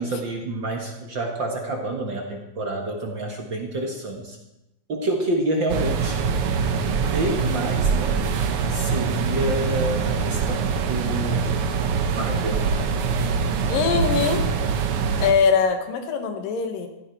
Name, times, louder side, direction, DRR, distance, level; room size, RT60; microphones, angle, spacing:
voice 1, 0.0-4.4 4.9-6.3 6.9-8.2 8.7-10.6 10.9-11.4 12.1-12.7, right 1 dB, 50° right, 2 dB, 1.5 m, -28 dB
sound 1, 5.7-15.3, right 5 dB, 80° right, 1.3 m, -24 dB
voice 2, 13.7-14.4 15.2-16.9, left 6 dB, 70° left, 6 dB, 3.1 m, -22 dB
15.5 x 15.0 x 4.5 m, 0.92 s
omnidirectional pair, 4.2 m